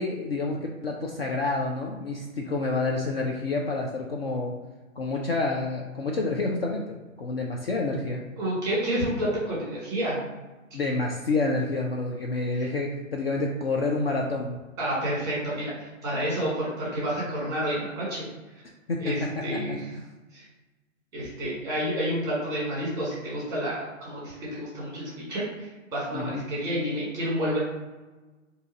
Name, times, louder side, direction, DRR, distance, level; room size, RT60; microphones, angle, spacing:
voice 1, 0.0-4.5 5.0-8.2 10.7-14.6 18.9-20.0 26.1-26.4, left 3 dB, 45° left, -1 dB, 0.4 m, -28 dB
voice 2, 8.4-10.2 12.6-12.7 14.8-18.2 19.0-19.8 20.3-20.4 21.1-27.6, equal, 10° right, -6 dB, 1.2 m, -29 dB
2.7 x 2.4 x 4.0 m, 1.2 s
hypercardioid pair, 145°, 41 cm